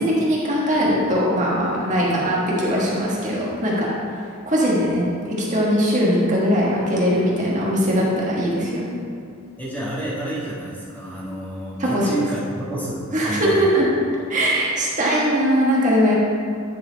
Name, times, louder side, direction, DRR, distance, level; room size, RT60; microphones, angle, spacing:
voice 1, 0.0-3.9 4.5-8.9 11.8-12.1 13.1-13.9 14.3-16.2, equal, 35° right, -5 dB, 1.4 m, -20 dB
voice 2, 9.6-13.7, right 1 dB, 10° left, -8 dB, 1.3 m, -29 dB
9.7 x 4.3 x 4.0 m, 2.3 s
head